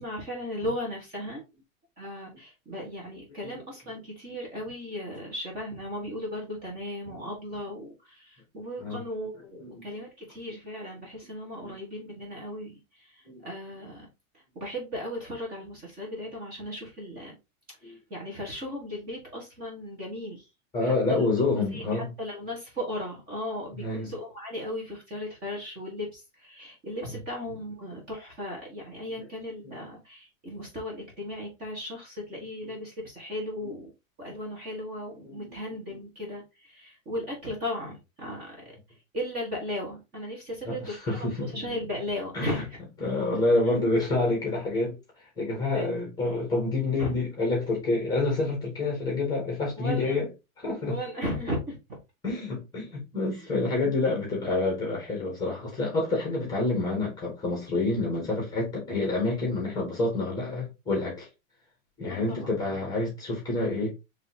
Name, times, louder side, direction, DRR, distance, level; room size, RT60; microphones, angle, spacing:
voice 1, 0.0-1.4 2.0-14.1 14.5-17.4 17.8-20.5 20.8-21.2 21.7-33.9 34.2-38.6 39.1-42.8 43.7-43.8 45.7-46.1 47.0-47.2 49.8-50.2 50.9-51.8 53.3-53.5 62.1-62.5, left 1 dB, 20° right, 1.5 m, -36 dB
voice 2, 20.7-22.1 23.8-24.1 29.6-29.8 35.2-35.5 40.7-41.5 42.3-42.6 43.0-45.0 45.4-50.3 50.6-51.0 52.2-61.3 62.0-63.9, left 2 dB, 10° left, 1.4 m, -28 dB
5.2 x 3.1 x 2.8 m
supercardioid pair, 165°, 42 cm